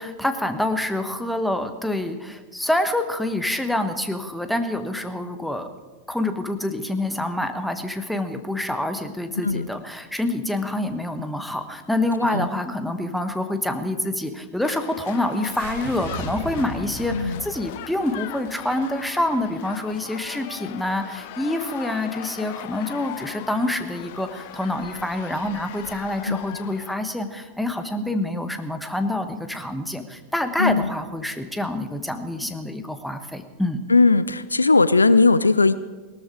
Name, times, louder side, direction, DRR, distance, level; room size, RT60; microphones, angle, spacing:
voice 1, 0.0-5.7 6.1-33.8, left 1 dB, ahead, 8 dB, 1.3 m, -27 dB
sound 1, 14.6-26.9, left 13 dB, 50° left, 0.8 m, -39 dB
sound 2, 15.5-19.8, right 2 dB, 50° right, 2.9 m, -37 dB
voice 2, 17.1-17.4 26.2-26.4 30.6-30.9 33.9-35.7, left 3 dB, 80° left, 16 dB, 0.5 m, -18 dB
18.0 x 13.5 x 4.9 m, 1.4 s
figure-of-eight pair, 90°, 0 cm